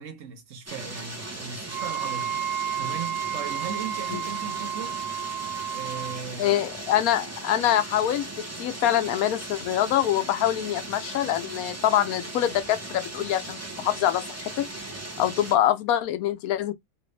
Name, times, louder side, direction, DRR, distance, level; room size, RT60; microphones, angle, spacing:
voice 1, 0.0-2.4 2.8-5.0 5.7-6.6, right 6 dB, 65° right, 1.2 m, -37 dB
sound 1, 0.7-15.6, right 2 dB, 15° right, 0.5 m, -38 dB
Wind instrument woodwind instrument, 1.7-6.2, right 9 dB, 85° right, 1.1 m, -32 dB
voice 2, 6.4-8.3 8.6-14.7 15.2-16.7, left 11 dB, 85° left, 1.1 m, -25 dB
3.3 x 2.5 x 3.1 m
omnidirectional pair, 1.5 m